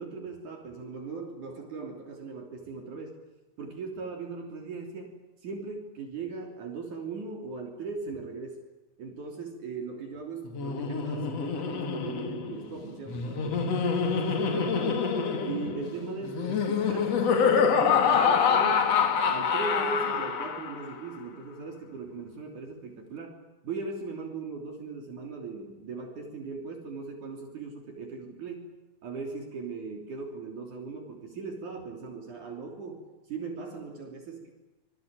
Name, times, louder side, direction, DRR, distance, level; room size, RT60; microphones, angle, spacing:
voice 1, 0.0-3.2 3.6-8.6 9.0-15.1 15.4-19.0 19.3-28.7 29.0-34.5, right 4 dB, 55° right, 2 dB, 4.5 m, -39 dB
Laughter, 10.5-20.9, left 6 dB, 50° left, 2.7 m, -26 dB
26.0 x 22.0 x 9.2 m, 1.1 s
omnidirectional pair, 4.1 m